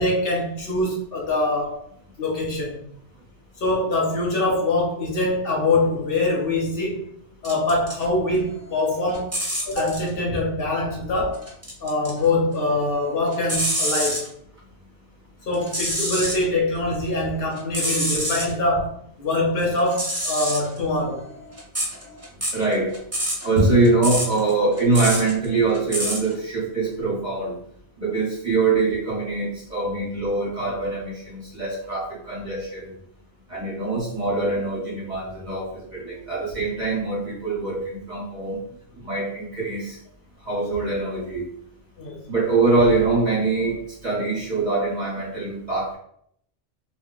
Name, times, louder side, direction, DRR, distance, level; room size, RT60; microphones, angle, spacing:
voice 1, 0.0-1.8 2.2-2.9 3.6-7.1 7.4-9.3 9.7-11.5 11.8-14.3 15.5-21.2 42.0-42.2, left 2 dB, 60° left, -2 dB, 0.8 m, -24 dB
sound 1, 7.4-8.0 8.4-10.1 11.3-12.3 12.6-14.3 15.5-16.4 16.9-18.5 19.8-26.3, equal, 20° right, 0.5 m, -28 dB
voice 2, 22.5-23.0 23.4-27.5 28.0-32.9 33.5-38.6 39.0-40.0 40.5-41.5 42.3-46.0, right 3 dB, 40° right, -5 dB, 1.0 m, -23 dB
2.4 x 2.1 x 3.7 m, 0.68 s
omnidirectional pair, 1.2 m